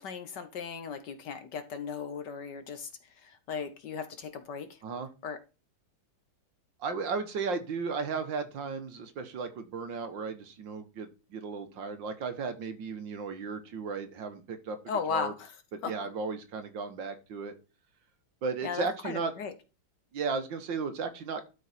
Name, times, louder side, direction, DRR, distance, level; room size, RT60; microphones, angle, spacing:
voice 1, 0.0-2.9 3.2-4.7 5.2-5.4 14.9-15.5 15.8-15.9 18.6-19.5, left 6 dB, 60° left, 9 dB, 1.4 m, -36 dB
voice 2, 6.8-15.3 15.7-17.6 18.4-19.3 20.1-21.5, right 4 dB, 65° right, 8 dB, 1.8 m, -35 dB
12.0 x 4.6 x 4.2 m, 0.30 s
omnidirectional pair, 2.3 m